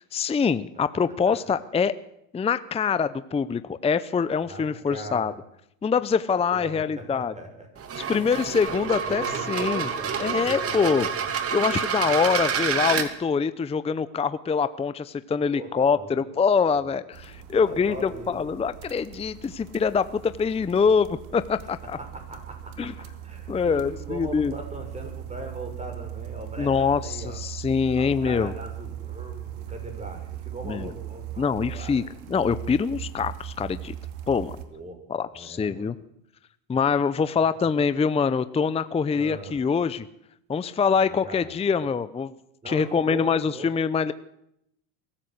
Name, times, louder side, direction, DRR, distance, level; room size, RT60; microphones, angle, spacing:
voice 1, 0.0-1.9 2.3-5.3 5.8-7.3 8.1-9.9 10.2-11.1 11.5-22.0 22.8-22.9 23.5-24.5 26.6-28.5 30.7-30.9 31.4-32.0 32.3-33.9 34.3-34.5 35.1-36.0 36.7-40.1 40.5-42.3 42.7-44.1, left 5 dB, 15° left, 14 dB, 0.7 m, -24 dB
voice 2, 4.4-5.3 6.5-7.7 8.6-11.0 15.5-16.4 16.7-16.9 17.6-18.4 22.0-27.4 28.0-32.1 34.7-35.0 35.3-35.9 37.4-37.7 39.1-39.6 40.9-41.7 42.6-43.7, right 1 dB, 15° right, 4 dB, 6.6 m, -40 dB
sound 1, 7.8-13.1, right 7 dB, 35° right, 2.7 m, -28 dB
sound 2, 17.1-34.7, right 11 dB, 80° right, 2.7 m, -39 dB
23.0 x 14.5 x 8.0 m, 0.77 s
supercardioid pair, 105°, 42 cm